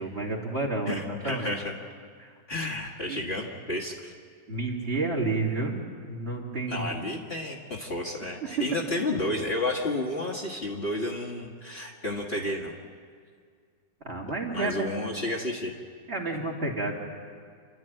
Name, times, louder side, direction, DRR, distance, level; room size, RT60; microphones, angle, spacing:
voice 1, 0.0-1.6 2.2-2.3 3.1-3.2 4.5-5.8 6.1-7.1 14.0-15.2 16.1-16.9, right 2 dB, 35° right, -2 dB, 3.0 m, -30 dB
voice 2, 0.9-1.6 2.5-4.1 6.7-12.8 14.5-15.8, left 1 dB, 35° left, -2 dB, 1.8 m, -31 dB
28.5 x 12.5 x 9.1 m, 2.1 s
omnidirectional pair, 1.9 m